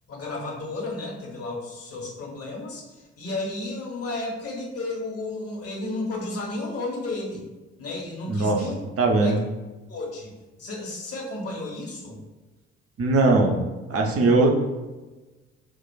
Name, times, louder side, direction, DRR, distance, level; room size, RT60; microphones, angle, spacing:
voice 1, 0.1-7.4 7.8-8.8 9.2-9.4 9.9-10.3 10.6-12.2, left 2 dB, 45° left, -2 dB, 1.4 m, -33 dB
voice 2, 8.2-8.6 9.0-9.4 13.0-13.6 13.9-14.5, right 2 dB, 45° right, 2 dB, 0.8 m, -20 dB
6.0 x 2.4 x 2.3 m, 1.2 s
hypercardioid pair, 45°, 34 cm